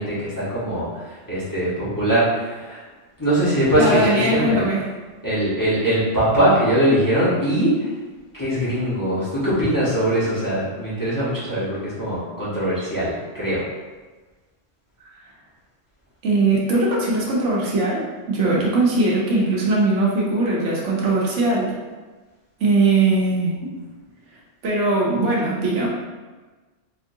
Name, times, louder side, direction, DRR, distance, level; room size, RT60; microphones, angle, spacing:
voice 1, 0.0-2.8 3.2-4.7 5.2-7.9 8.3-13.6, right 1 dB, 15° left, -11 dB, 1.0 m, -21 dB
voice 2, 3.8-4.8 16.2-21.7 22.6-23.7 24.6-25.9, right 2 dB, 70° right, -4 dB, 1.1 m, -20 dB
4.4 x 2.6 x 2.6 m, 1.3 s
omnidirectional pair, 1.3 m